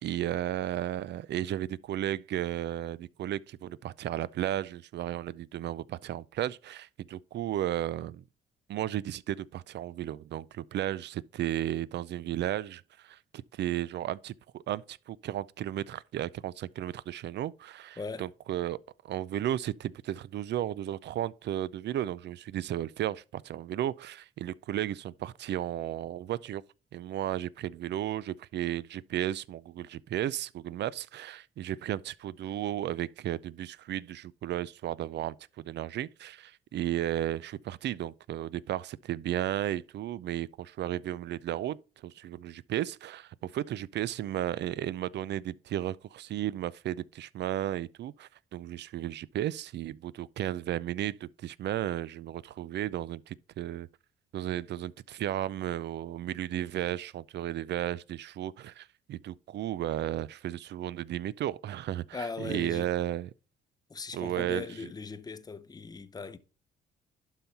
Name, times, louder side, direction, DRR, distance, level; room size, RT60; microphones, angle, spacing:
voice 1, 0.0-8.2 8.7-18.8 19.0-26.6 26.9-41.8 42.0-53.9 54.3-63.3 64.1-64.6, right 12 dB, 60° right, 0.4 m, -34 dB
voice 2, 18.0-18.3 62.1-62.9 63.9-66.4, left 4 dB, 20° left, 0.7 m, -39 dB
11.5 x 3.9 x 4.1 m
cardioid pair, 90°, 20 cm